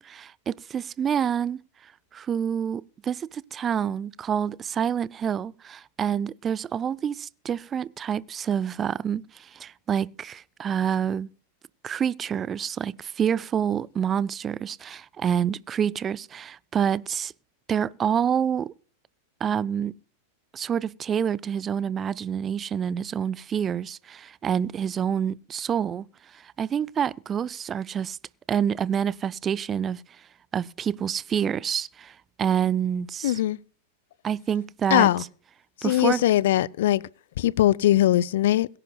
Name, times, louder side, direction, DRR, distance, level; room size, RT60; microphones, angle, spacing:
voice 1, 0.0-1.6 2.1-11.3 11.8-17.3 17.7-18.7 19.4-19.9 20.5-26.0 26.3-28.2 28.5-30.0 30.5-33.4 34.2-35.1 35.8-36.2, right 8 dB, 25° right, 0.4 m, -27 dB
voice 2, 33.2-33.6 34.9-35.2 35.8-37.0 37.4-38.7, left 13 dB, 55° left, 0.5 m, -21 dB
22.5 x 11.0 x 2.3 m
figure-of-eight pair, 90°, 0 cm